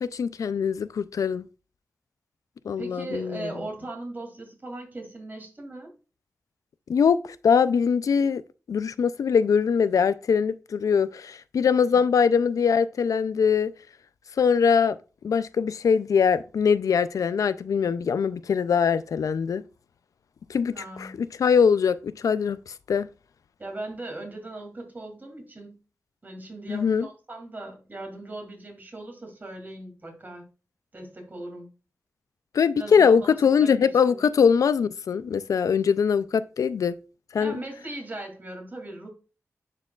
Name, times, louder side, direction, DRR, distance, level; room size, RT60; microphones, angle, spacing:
voice 1, 0.0-1.4 2.7-3.5 6.9-7.2 7.4-8.4 8.7-13.7 14.4-15.0 15.2-19.6 20.5-23.1 26.7-27.1 32.5-37.0 37.3-37.6, left 6 dB, 85° left, 0.3 m, -22 dB
voice 2, 2.8-5.9 11.8-12.0 20.7-21.2 23.6-25.8 26.2-30.4 30.9-31.7 32.7-34.2 37.4-39.1, right 2 dB, 35° right, 2.4 m, -39 dB
10.5 x 4.5 x 2.4 m
wide cardioid pair, 125°, 6 cm